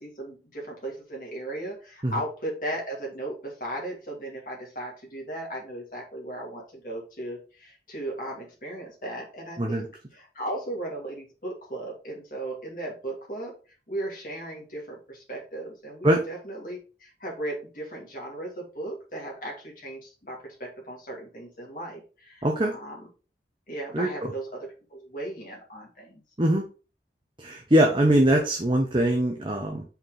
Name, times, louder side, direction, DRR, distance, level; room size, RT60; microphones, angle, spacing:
voice 1, 0.0-13.6 13.9-23.0 23.7-26.2, right 1 dB, 50° left, -2 dB, 2.4 m, -36 dB
voice 2, 22.4-22.7 23.9-24.3 26.4-26.7 27.4-29.8, right 1 dB, 30° right, 1 dB, 0.8 m, -22 dB
5.7 x 4.5 x 3.7 m, 0.35 s
head